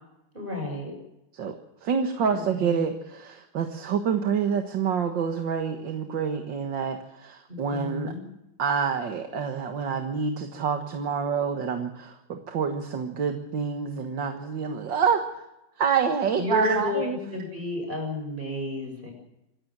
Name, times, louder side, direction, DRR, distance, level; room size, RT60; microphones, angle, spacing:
voice 1, 0.3-0.9 2.3-2.8 7.5-8.2 16.4-19.1, left 2 dB, 25° right, 3 dB, 6.9 m, -32 dB
voice 2, 1.4-8.1 8.6-15.5 15.8-17.2, right 6 dB, 65° right, 5 dB, 2.2 m, -27 dB
26.0 x 14.5 x 7.4 m, 0.90 s
omnidirectional pair, 2.2 m